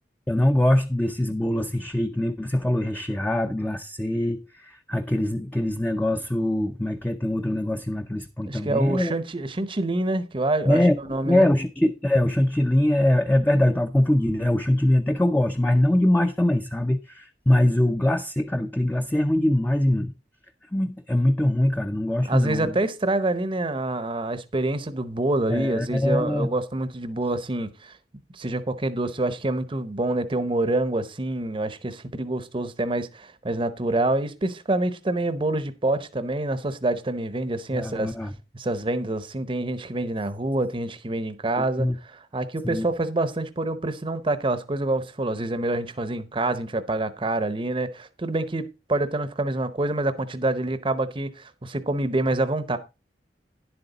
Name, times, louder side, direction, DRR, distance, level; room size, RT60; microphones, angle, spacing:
voice 1, 0.3-9.1 10.7-11.0 11.3-20.1 20.7-22.8 25.5-26.5 37.7-38.3 41.6-42.0 42.6-42.9, left 1 dB, 10° left, 0.5 m, -23 dB
voice 2, 8.4-11.5 22.2-28.0 28.3-38.1 38.5-52.8, right 2 dB, 30° right, 0.8 m, -27 dB
10.5 x 8.0 x 4.0 m
head